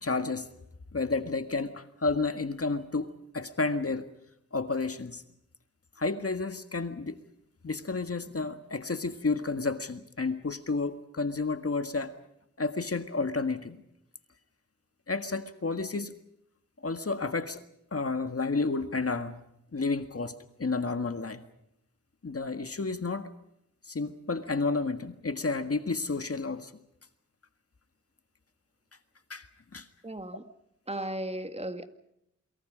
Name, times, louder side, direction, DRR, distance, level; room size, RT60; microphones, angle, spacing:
voice 1, 0.0-0.5 0.9-4.1 4.5-5.2 6.0-7.2 7.6-12.1 12.6-13.8 15.1-16.1 16.8-17.6 17.9-19.4 19.7-21.4 22.2-23.3 23.9-26.7 29.3-29.5 29.7-29.9, left 3 dB, 50° left, 9 dB, 1.7 m, -31 dB
voice 2, 30.0-30.4 30.9-31.9, right 1 dB, 20° right, 9 dB, 2.0 m, -35 dB
29.0 x 23.5 x 5.1 m, 0.78 s
wide cardioid pair, 65°, 30 cm